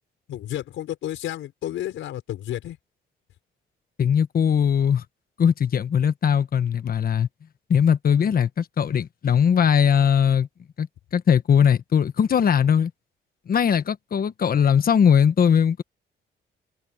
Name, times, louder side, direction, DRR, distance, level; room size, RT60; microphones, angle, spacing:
voice 1, 0.3-2.8, left 12 dB, 80° left, 5.5 m, -31 dB
voice 2, 4.0-5.0 5.4-7.3 7.7-10.5 10.8-12.9 13.5-15.8, left 7 dB, 50° left, 1.3 m, -20 dB
cardioid pair, 90°, 20 cm